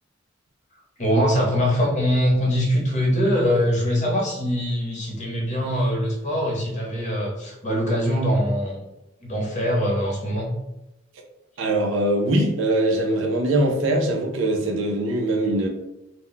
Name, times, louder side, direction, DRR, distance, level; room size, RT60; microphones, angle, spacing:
voice 1, 1.0-8.8 9.2-10.5, equal, 35° left, -2 dB, 0.7 m, -22 dB
voice 2, 11.6-15.7, right 1 dB, 65° right, 2 dB, 0.5 m, -22 dB
2.1 x 2.1 x 3.8 m, 0.92 s
head